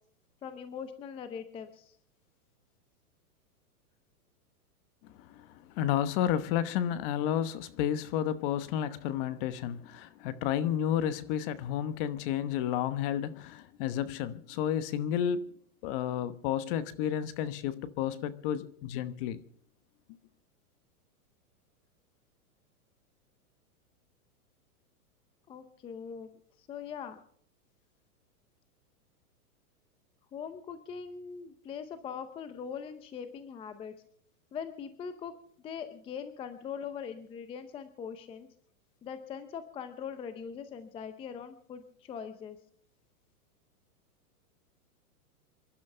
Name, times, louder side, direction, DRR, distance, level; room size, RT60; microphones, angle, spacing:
voice 1, 0.4-2.0 25.5-27.2 30.3-33.9 34.5-35.3 35.6-38.5 39.0-42.6, left 7 dB, 10° left, 0.6 m, -41 dB
voice 2, 5.0-15.6 15.8-19.4, left 10 dB, 35° left, 1.1 m, -31 dB
28.0 x 12.0 x 3.3 m
hypercardioid pair, 150°, 45 cm